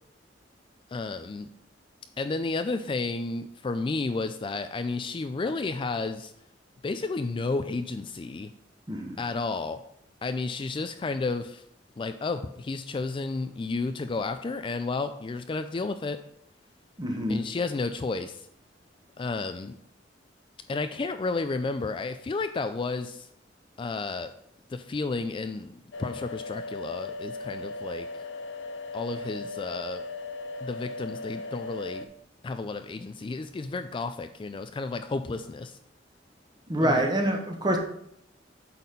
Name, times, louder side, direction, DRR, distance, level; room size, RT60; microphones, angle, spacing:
voice 1, 0.9-1.5 2.2-6.3 6.8-8.5 9.2-9.8 10.2-11.6 12.0-16.2 17.3-18.5 19.2-19.8 20.7-23.3 23.8-24.3 24.7-25.7 26.0-28.1 28.9-30.0 30.6-32.1 32.4-35.8 36.8-37.0, left 3 dB, 30° left, 9 dB, 0.3 m, -32 dB
voice 2, 8.9-9.2 17.0-17.4 36.7-37.8, right 1 dB, 25° right, 3 dB, 1.2 m, -26 dB
sound 1, 25.9-32.0, left 3 dB, 85° left, 0.7 m, -38 dB
8.2 x 4.3 x 5.2 m, 0.72 s
head